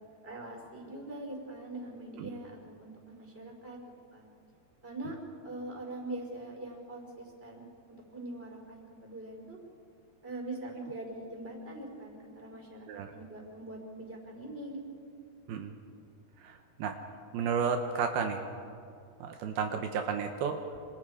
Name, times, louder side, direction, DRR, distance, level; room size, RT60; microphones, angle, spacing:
voice 1, 0.2-4.3 4.8-5.2 5.4-9.6 10.2-14.8, right 2 dB, 15° right, 0 dB, 5.1 m, -43 dB
voice 2, 16.4-17.0 17.3-18.4 19.2-20.6, right 6 dB, 80° right, 5 dB, 2.9 m, -32 dB
28.0 x 26.5 x 5.0 m, 2.5 s
omnidirectional pair, 4.5 m